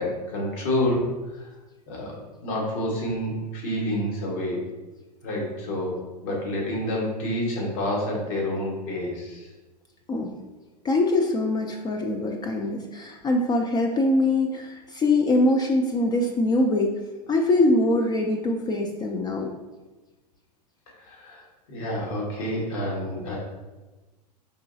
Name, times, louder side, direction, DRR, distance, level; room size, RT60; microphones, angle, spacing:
voice 1, 0.0-1.5 1.9-4.7 5.2-9.5 20.9-23.4, left 1 dB, 55° left, -2 dB, 1.4 m, -29 dB
voice 2, 10.8-16.9 17.3-19.5, left 2 dB, 20° left, 2 dB, 0.3 m, -23 dB
4.8 x 3.0 x 2.6 m, 1.2 s
hypercardioid pair, 100°, 21 cm